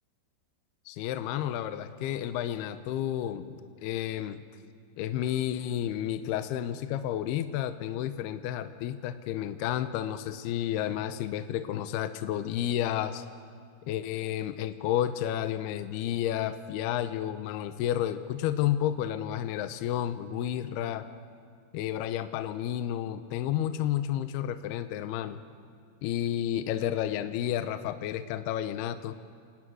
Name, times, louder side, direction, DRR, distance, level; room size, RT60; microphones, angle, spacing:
voice 1, 0.9-4.4 5.0-13.2 13.9-21.1 21.7-25.4 26.0-29.1, left 11 dB, 75° left, 10 dB, 2.7 m, -31 dB
27.5 x 18.0 x 9.5 m, 2.2 s
omnidirectional pair, 5.0 m